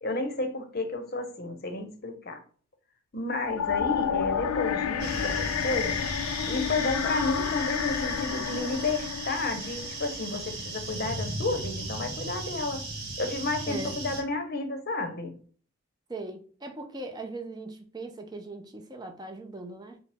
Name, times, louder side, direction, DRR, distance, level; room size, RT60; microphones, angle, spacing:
voice 1, 0.0-2.4 3.1-6.1 6.5-12.8 13.2-15.4, left 2 dB, 45° left, 0.7 m, -31 dB
sound 1, 3.5-10.6, left 8 dB, 85° left, 0.4 m, -30 dB
sound 2, 5.0-14.2, right 2 dB, 50° right, 1.5 m, -37 dB
voice 2, 16.1-20.0, right 2 dB, 20° right, 0.5 m, -39 dB
4.8 x 2.0 x 3.4 m
head